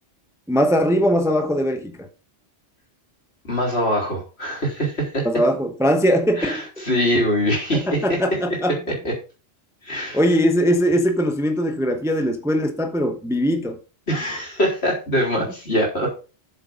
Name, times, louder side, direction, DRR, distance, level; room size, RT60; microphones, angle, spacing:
voice 1, 0.5-2.1 5.2-6.8 7.7-8.8 10.1-13.8, equal, 5° right, 0.9 m, -21 dB
voice 2, 3.4-5.3 6.4-8.4 9.0-9.1 9.8-10.2 14.1-16.1, equal, 60° left, 3.9 m, -23 dB
7.9 x 7.2 x 5.2 m
omnidirectional pair, 1.2 m